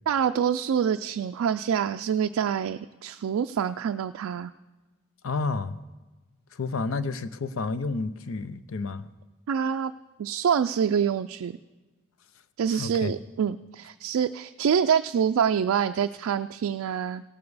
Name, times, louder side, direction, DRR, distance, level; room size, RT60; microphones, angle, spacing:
voice 1, 0.1-4.5 9.5-9.9 10.2-11.6 12.6-17.2, right 8 dB, 90° right, 7 dB, 0.3 m, -26 dB
voice 2, 5.2-5.8 6.6-9.0 12.7-13.1, left 3 dB, 75° left, 13 dB, 0.6 m, -30 dB
17.5 x 7.1 x 4.8 m, 1.2 s
head